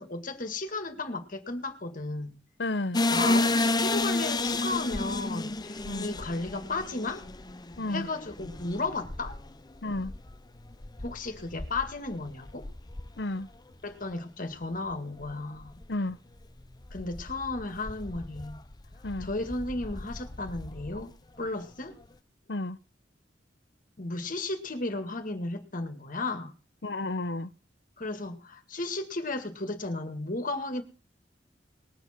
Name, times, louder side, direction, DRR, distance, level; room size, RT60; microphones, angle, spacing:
voice 1, 0.0-2.4 3.1-7.2 7.9-9.4 11.0-12.7 13.8-15.8 16.9-18.6 19.2-21.1 21.4-22.0 24.0-26.5 28.0-30.8, left 2 dB, 50° left, 2.1 m, -34 dB
voice 2, 2.6-3.0 5.8-6.1 7.8-8.1 9.8-10.1 13.2-13.5 15.9-16.2 19.0-19.3 22.5-22.8 26.8-27.5, left 2 dB, 65° left, 0.9 m, -32 dB
sound 1, 2.9-13.8 14.1-14.2 14.7-14.9 15.2-15.9 16.4-21.1, left 2 dB, 25° left, 0.8 m, -32 dB
20.5 x 7.4 x 5.9 m
head